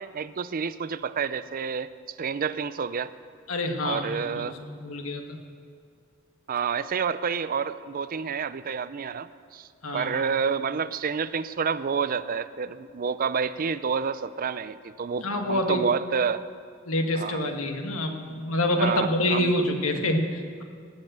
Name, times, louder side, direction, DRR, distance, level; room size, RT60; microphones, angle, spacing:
voice 1, 0.0-3.1 3.8-4.5 6.5-9.7 9.9-16.4 17.2-17.5 18.8-19.5, right 6 dB, 40° right, 14 dB, 0.4 m, -29 dB
voice 2, 3.5-4.5 4.8-5.4 9.8-10.2 15.2-15.8 16.9-20.6, left 1 dB, 85° left, 4 dB, 1.6 m, -27 dB
20.0 x 7.5 x 7.9 m, 2.2 s
head